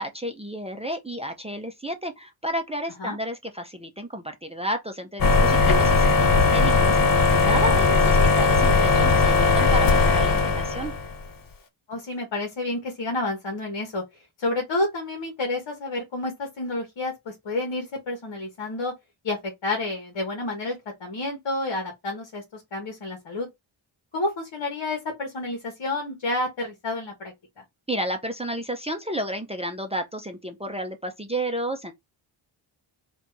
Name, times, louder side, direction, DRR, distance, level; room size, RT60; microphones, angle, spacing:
voice 1, 0.0-10.9 27.9-31.9, right 1 dB, 10° right, 0.7 m, -31 dB
sound 1, 5.2-11.1, left 4 dB, 45° left, 0.8 m, -19 dB
voice 2, 11.9-14.0 14.4-18.9 19.2-23.5 24.1-27.3, left 2 dB, 60° left, 1.6 m, -30 dB
4.3 x 2.6 x 4.6 m
wide cardioid pair, 110°, 49 cm